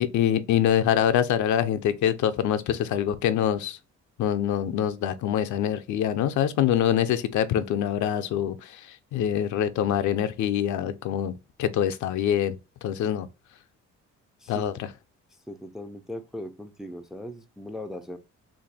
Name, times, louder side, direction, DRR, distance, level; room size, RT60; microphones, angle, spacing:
voice 1, 0.0-3.8 4.2-11.3 11.6-13.3 14.5-14.9, left 10 dB, 70° left, 0.5 m, -25 dB
voice 2, 15.5-18.2, left 1 dB, ahead, 0.3 m, -38 dB
2.7 x 2.5 x 4.0 m
cardioid pair, 90°, 30 cm